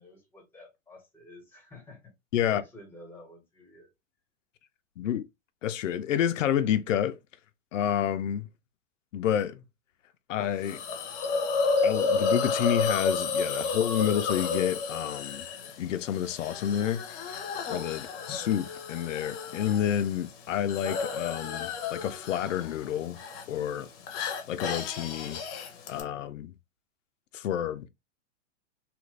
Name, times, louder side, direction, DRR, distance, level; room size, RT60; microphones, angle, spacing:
voice 1, 0.0-2.1 2.4-3.9, left 2 dB, 5° left, 1.2 m, -50 dB
voice 2, 5.6-7.2 7.7-8.5 9.1-9.6 10.3-10.8 11.8-15.5 15.8-17.0 17.7-23.2 23.5-23.9 24.5-25.4 25.9-26.5 27.3-27.9, left 10 dB, 85° left, 0.5 m, -29 dB
Hiss, 10.6-26.0, left 4 dB, 35° left, 0.8 m, -32 dB
sound 1, 11.2-11.3 11.8-12.4 13.0-13.1 13.5-14.1 14.7-14.8 15.3-15.5, right 4 dB, 65° right, 1.4 m, -53 dB
2.9 x 2.5 x 3.2 m
hypercardioid pair, 130°, 37 cm